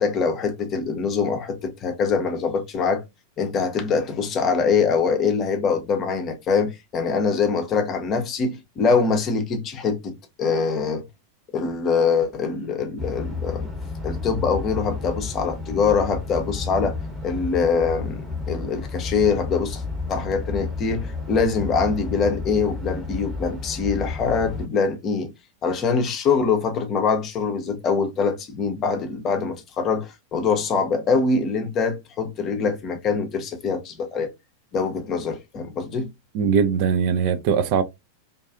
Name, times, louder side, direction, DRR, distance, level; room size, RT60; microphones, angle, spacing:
voice 1, 0.0-3.0 3.4-10.1 10.4-11.0 11.5-13.7 14.0-17.0 17.2-19.8 20.1-25.3 25.6-34.3 34.7-36.1, left 5 dB, 30° left, 0.6 m, -23 dB
sound 1, 13.0-24.7, left 4 dB, 5° right, 0.9 m, -31 dB
voice 2, 36.3-37.8, right 7 dB, 45° right, 0.3 m, -20 dB
2.5 x 2.3 x 2.3 m
figure-of-eight pair, 90°, 0 cm